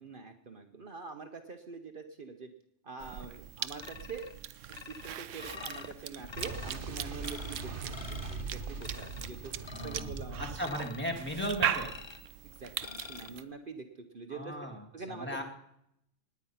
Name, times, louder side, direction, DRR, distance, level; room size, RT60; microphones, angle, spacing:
voice 1, 0.0-2.5 2.8-4.3 4.8-9.5 9.8-10.5 12.4-13.8 14.1-14.6 14.9-15.4, right 4 dB, 50° right, 6 dB, 1.1 m, -45 dB
Cough / Chewing mastication, 3.0-13.4, right 10 dB, 90° right, 1.1 m, -40 dB
sound 1, 3.8-4.4 4.7-5.9 6.3-6.8 7.2-7.6 7.9-8.4 8.8-9.3 9.6-10.1 10.6-11.2 11.7-12.3 12.8-13.3, left 6 dB, 45° left, 0.3 m, -47 dB
Boom, 6.4-11.9, right 4 dB, 70° right, 1.6 m, -41 dB
voice 2, 9.7-10.1 10.4-11.9 14.3-15.4, equal, 10° left, 1 dB, 2.2 m, -36 dB
19.0 x 9.6 x 5.7 m, 0.76 s
omnidirectional pair, 1.2 m